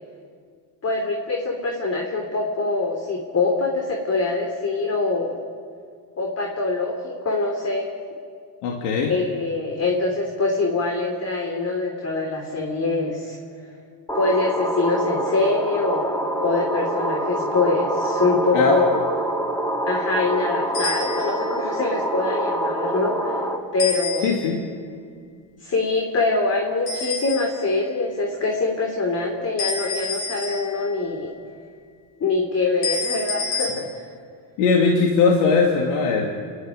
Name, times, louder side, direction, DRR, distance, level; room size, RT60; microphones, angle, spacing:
voice 1, 0.8-5.4 6.2-7.9 9.1-13.4 14.1-18.9 19.9-23.4 23.7-24.3 25.6-31.3 32.2-34.1, left 3 dB, 30° left, 1 dB, 3.2 m, -24 dB
voice 2, 8.6-9.1 18.5-18.8 24.2-24.6 34.6-36.3, left 4 dB, 80° left, 0 dB, 2.7 m, -19 dB
sound 1, 14.1-23.6, right 1 dB, 5° left, 2.7 m, -26 dB
sound 2, 20.7-21.5 23.8-24.7 26.9-27.8 29.6-31.0 32.8-33.7, left 4 dB, 50° left, 7.7 m, -29 dB
29.0 x 11.5 x 9.8 m, 2.1 s
supercardioid pair, 95°, 47 cm